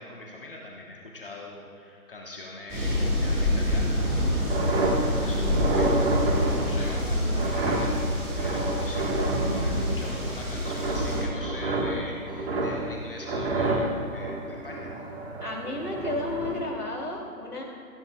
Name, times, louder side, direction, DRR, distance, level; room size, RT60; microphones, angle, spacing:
voice 1, 0.0-15.0, left 1 dB, 35° left, -1 dB, 1.2 m, -42 dB
sound 1, 2.7-11.2, left 1 dB, 10° right, 1.8 m, -27 dB
sound 2, 4.5-10.4 10.6-13.0 13.3-16.6, right 2 dB, 45° right, 1.6 m, -29 dB
voice 2, 15.4-17.6, left 1 dB, 80° left, 0 dB, 2.8 m, -32 dB
15.5 x 14.0 x 2.4 m, 2.5 s
figure-of-eight pair, 145°, 45 cm